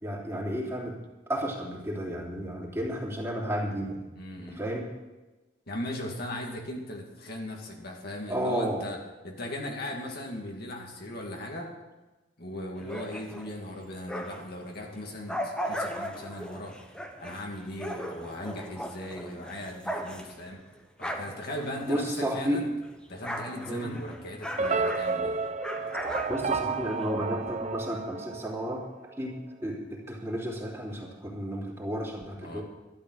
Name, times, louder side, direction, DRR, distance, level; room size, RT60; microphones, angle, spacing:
voice 1, 0.0-1.0 1.3-4.0 4.4-4.9 8.3-8.8 21.9-22.6 23.7-23.9 26.3-28.8 29.2-29.3 29.6-32.6, equal, 15° right, -3 dB, 3.2 m, -32 dB
voice 2, 4.1-4.6 5.7-11.7 12.4-16.8 17.2-20.6 21.0-22.7 23.1-25.4 32.4-32.6, left 1 dB, 60° left, 0 dB, 2.4 m, -38 dB
sound 1, 12.7-14.6 15.0-22.6 22.8-27.1, equal, 5° left, 1.4 m, -38 dB
sound 2, 24.6-28.9, right 4 dB, 40° right, 0.8 m, -31 dB
12.5 x 12.0 x 6.5 m, 1.1 s
head